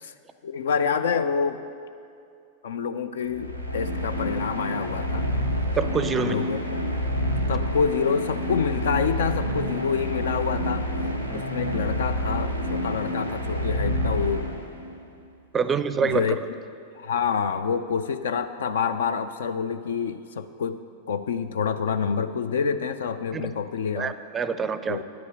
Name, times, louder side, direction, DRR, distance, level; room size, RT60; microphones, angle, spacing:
voice 1, 0.4-1.6 2.6-5.3 6.1-6.6 7.5-10.9 11.3-14.5 16.0-16.4 17.0-20.8 21.1-24.1 24.9-25.0, left 6 dB, 60° left, 11 dB, 0.3 m, -27 dB
sound 1, 3.2-15.0, equal, 90° left, 0.8 m, -28 dB
voice 2, 5.8-6.4 11.3-11.5 15.5-16.4 23.3-23.5 24.0-25.0, right 6 dB, 20° right, 12 dB, 0.4 m, -26 dB
9.7 x 5.5 x 7.7 m, 2.5 s
figure-of-eight pair, 90°, 0 cm